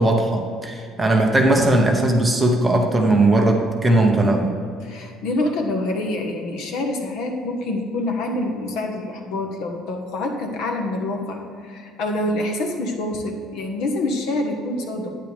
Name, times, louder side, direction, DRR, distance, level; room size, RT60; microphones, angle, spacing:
voice 1, 0.0-4.5, right 2 dB, 10° right, 1 dB, 1.0 m, -18 dB
voice 2, 4.8-15.1, left 2 dB, 65° left, 3 dB, 1.4 m, -26 dB
11.5 x 9.7 x 3.5 m, 2.3 s
cardioid pair, 175°, 0 cm